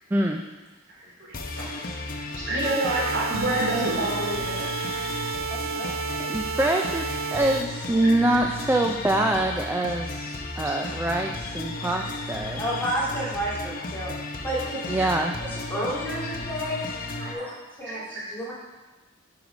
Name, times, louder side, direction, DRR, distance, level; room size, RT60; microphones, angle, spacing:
voice 1, 0.1-0.4 6.2-12.6 14.9-15.3, right 1 dB, 10° right, 2 dB, 0.4 m, -25 dB
voice 2, 0.9-1.8 2.2-5.1 5.5-6.0 8.0-8.4 10.4-10.8 11.8-12.0 13.4-13.9 14.5-14.7 15.0-15.1 16.2-16.3 17.1-17.5 17.8-18.5, right 1 dB, 60° right, -5 dB, 2.8 m, -31 dB
sound 1, 1.3-17.3, left 2 dB, 45° left, 0.8 m, -34 dB
sound 2, 2.6-7.6, right 6 dB, 75° right, 0.4 m, -32 dB
voice 3, 5.5-6.0 12.6-14.1 14.4-15.2 15.5-16.8 17.2-17.5 17.8-18.0 18.3-18.5, right 1 dB, 10° left, -7 dB, 2.3 m, -31 dB
10.5 x 4.7 x 5.1 m, 1.2 s
head